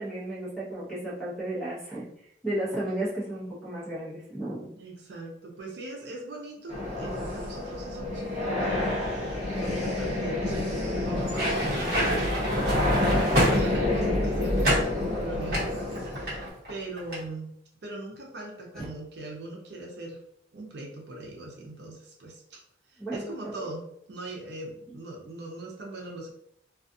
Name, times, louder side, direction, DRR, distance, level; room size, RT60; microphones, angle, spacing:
voice 1, 0.0-4.7 18.7-18.9 23.0-23.7 24.9-25.0, right 1 dB, 5° left, -8 dB, 0.9 m, -34 dB
voice 2, 4.7-8.9 9.1-17.5 17.8-20.2 20.5-22.6 22.9-26.3, right 2 dB, 70° right, 0 dB, 0.5 m, -40 dB
sound 1, 6.7-16.5, left 1 dB, 35° right, 0.8 m, -28 dB
sound 2, 11.2-14.1 14.6-14.9 15.5-16.7 17.0-17.2, equal, 55° right, 1.0 m, -27 dB
2.4 x 2.3 x 2.6 m, 0.71 s
head